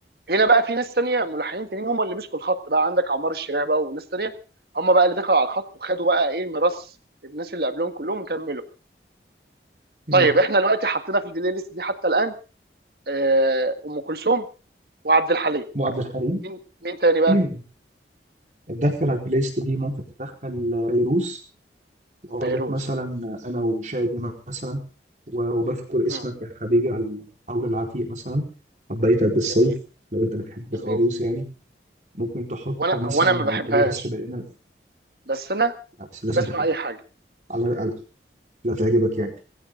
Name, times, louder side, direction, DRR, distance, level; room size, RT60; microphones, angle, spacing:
voice 1, 0.3-4.3 4.8-6.8 7.3-8.6 10.1-12.3 13.1-14.4 15.0-15.7 16.4-16.6 16.8-17.3 22.4-22.8 26.1-26.2 29.6-29.7 30.7-31.0 32.8-33.9 35.3-35.7 36.3-37.0, right 2 dB, 60° right, 9 dB, 1.8 m, -22 dB
voice 2, 15.7-16.4 17.3-17.6 18.7-19.9 20.2-21.4 22.3-24.8 25.3-28.4 28.9-29.7 30.1-31.4 32.1-34.4 36.2-36.5 37.5-37.9 38.6-39.3, equal, 45° right, 2 dB, 4.5 m, -25 dB
20.5 x 16.0 x 3.9 m, 0.35 s
head